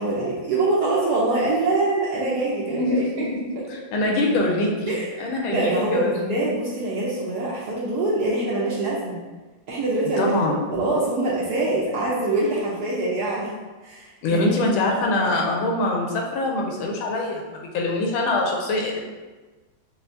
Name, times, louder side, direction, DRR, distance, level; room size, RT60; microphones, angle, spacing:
voice 1, 0.0-3.3 4.9-5.1 5.5-9.2 9.7-13.5 13.8-14.5, right 2 dB, 70° right, -6 dB, 1.0 m, -24 dB
voice 2, 2.6-4.9 5.2-6.3 10.2-10.6 14.2-19.1, left 2 dB, 80° left, 0 dB, 1.5 m, -24 dB
5.5 x 2.4 x 2.6 m, 1.3 s
omnidirectional pair, 2.3 m